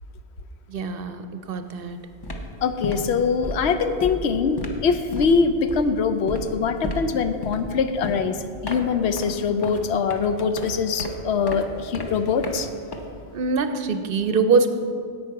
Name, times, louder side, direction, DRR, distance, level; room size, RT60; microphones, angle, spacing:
voice 1, 0.7-2.0 13.3-14.7, right 4 dB, 65° right, 9 dB, 0.7 m, -23 dB
sound 1, 1.6-1.8 2.1-13.5, left 1 dB, 25° left, 0.7 m, -35 dB
voice 2, 2.6-8.4 8.6-12.7, left 5 dB, 75° left, 9 dB, 0.9 m, -23 dB
10.5 x 8.4 x 4.7 m, 2.4 s
omnidirectional pair, 1.1 m